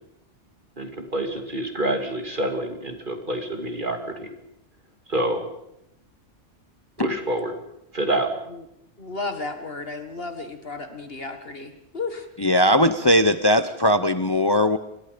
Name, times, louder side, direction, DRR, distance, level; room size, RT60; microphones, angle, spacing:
voice 1, 0.8-4.3 5.1-5.4 7.0-7.5 7.9-8.3, right 1 dB, 45° right, 5 dB, 2.8 m, -27 dB
voice 2, 9.0-12.3, left 3 dB, 55° left, 7 dB, 2.0 m, -33 dB
voice 3, 12.4-14.8, left 1 dB, 25° left, 11 dB, 0.8 m, -19 dB
28.0 x 22.5 x 5.2 m, 0.81 s
omnidirectional pair, 1.2 m